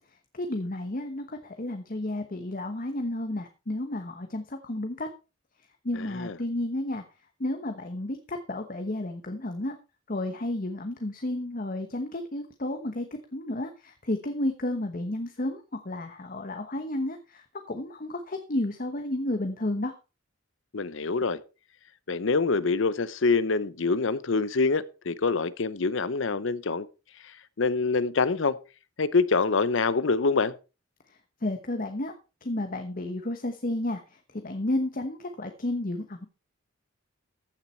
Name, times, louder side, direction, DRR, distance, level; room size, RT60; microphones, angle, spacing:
voice 1, 0.3-5.1 5.8-7.0 7.4-9.8 10.1-13.1 13.3-19.9 31.1-32.1 32.4-36.2, left 1 dB, 40° left, 1.1 m, -32 dB
voice 2, 6.0-6.3 20.7-21.4 22.1-26.9 27.2-28.6 29.0-30.5, left 4 dB, 65° left, 0.7 m, -25 dB
14.5 x 7.4 x 4.4 m
head